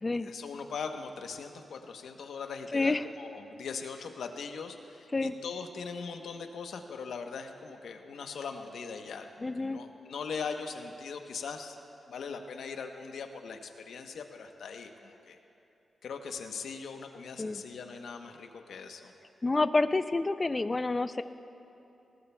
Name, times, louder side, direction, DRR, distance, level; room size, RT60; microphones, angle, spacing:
voice 1, 0.1-11.8 12.1-15.4 16.0-19.1, left 5 dB, 90° left, 5 dB, 0.8 m, -40 dB
voice 2, 2.7-3.1 5.1-5.3 9.4-9.8 17.4-17.6 19.4-21.2, left 3 dB, 25° left, 12 dB, 0.4 m, -28 dB
21.0 x 18.0 x 2.2 m, 2.9 s
wide cardioid pair, 135°, 0 cm